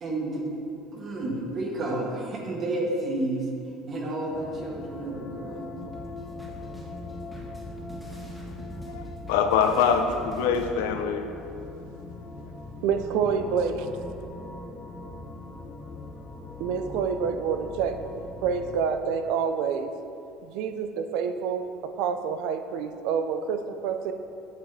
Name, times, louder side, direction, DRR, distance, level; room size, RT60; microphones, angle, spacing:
voice 1, 0.0-0.4 0.9-3.5 3.9-5.8, right 2 dB, 40° right, -1 dB, 1.3 m, -31 dB
sound 1, 4.3-18.8, left 2 dB, 25° left, 0.6 m, -41 dB
sound 2, 5.8-10.7, equal, ahead, 1.6 m, -44 dB
voice 2, 8.9-11.3, left 6 dB, 85° left, 6 dB, 0.5 m, -24 dB
voice 3, 12.8-13.9 16.6-19.9 20.4-21.6 22.0-24.1, right 6 dB, 75° right, 8 dB, 0.5 m, -28 dB
8.5 x 6.4 x 2.7 m, 2.6 s
supercardioid pair, 100°, 0 cm